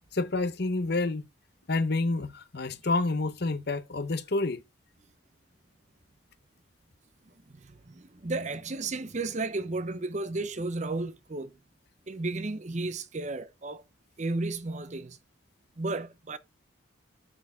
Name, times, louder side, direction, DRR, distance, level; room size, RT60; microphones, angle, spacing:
voice 1, 0.1-1.2 1.7-4.6, left 3 dB, 55° left, 0.9 m, -28 dB
voice 2, 7.5-11.6 12.1-13.8 14.2-15.2 15.8-16.4, right 2 dB, 35° right, 0.7 m, -33 dB
11.0 x 4.6 x 3.6 m
head